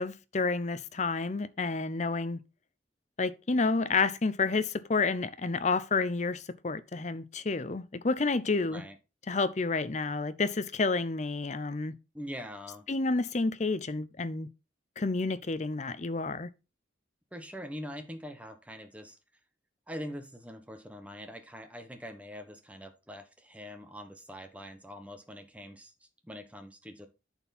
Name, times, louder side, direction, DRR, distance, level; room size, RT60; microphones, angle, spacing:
voice 1, 0.0-2.4 3.2-8.8 9.3-11.9 12.9-14.5 15.0-16.5, left 3 dB, 40° left, 0.6 m, -30 dB
voice 2, 8.6-9.0 12.1-12.8 17.3-19.2 19.9-25.9 26.2-27.1, equal, 5° right, 1.1 m, -43 dB
10.5 x 4.5 x 4.2 m
head